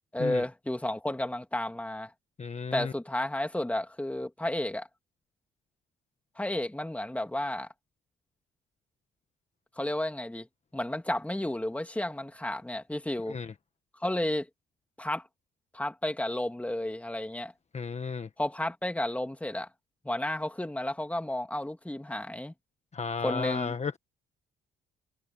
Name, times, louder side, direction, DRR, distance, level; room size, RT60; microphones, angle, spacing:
voice 1, 0.1-2.1 2.7-4.9 6.4-7.7 9.8-10.5 10.7-13.4 14.0-14.5 15.0-15.2 15.7-17.5 18.4-19.7 20.0-22.5 23.2-23.7, left 1 dB, 5° left, 2.6 m, -32 dB
voice 2, 2.4-2.9 13.3-13.5 17.7-18.3 22.9-24.0, left 5 dB, 35° left, 1.5 m, -33 dB
cardioid pair, 90°, 20 cm